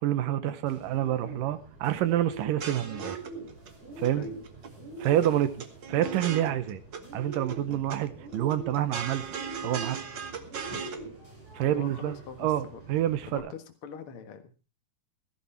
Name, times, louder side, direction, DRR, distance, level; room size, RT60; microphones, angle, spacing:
voice 1, 0.0-3.2 4.0-4.3 5.0-5.6 5.9-6.8 7.1-9.3 9.6-10.0 11.5-13.5, right 12 dB, 70° right, 12 dB, 2.5 m, -28 dB
Bird, 0.7-13.4, right 3 dB, 25° right, 7.9 m, -43 dB
sound 1, 2.4-3.7 4.0-4.7 5.0-7.0 7.3-8.0 8.3-11.0, right 6 dB, 55° right, 1.2 m, -38 dB
voice 2, 11.6-12.8 13.3-14.7, left 6 dB, 50° left, 6 dB, 1.9 m, -43 dB
16.0 x 12.5 x 4.4 m, 0.32 s
omnidirectional pair, 4.2 m